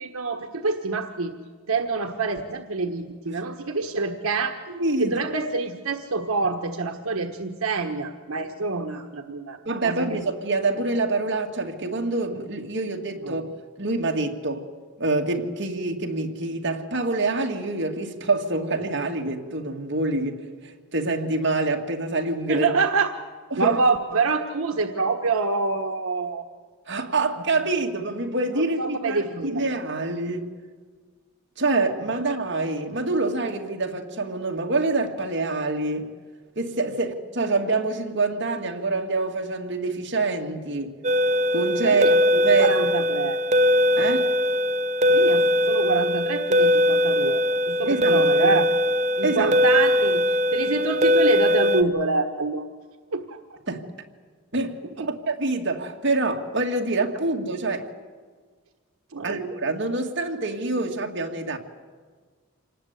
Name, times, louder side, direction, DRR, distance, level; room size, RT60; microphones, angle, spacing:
voice 1, 0.0-1.3 1.7-4.6 5.0-10.2 13.2-13.4 22.5-23.1 23.6-26.4 28.6-29.6 41.8-42.2 42.6-43.4 45.1-48.7 49.2-50.2 50.5-52.7 53.1-53.4 55.0-55.1 59.1-59.4, right 3 dB, 80° right, 1.3 m, -26 dB
voice 2, 4.7-5.2 9.7-13.4 13.8-14.7 15.0-22.7 23.5-23.8 26.9-30.5 31.6-36.1 36.6-41.0 41.5-42.8 44.0-44.3 47.8-48.6 49.2-49.6 53.7-53.8 54.5-54.8 55.1-57.9 59.2-61.6, right 3 dB, 55° right, 2.1 m, -26 dB
sound 1, 41.0-51.8, left 1 dB, 35° right, 0.7 m, -21 dB
26.5 x 19.0 x 8.2 m
head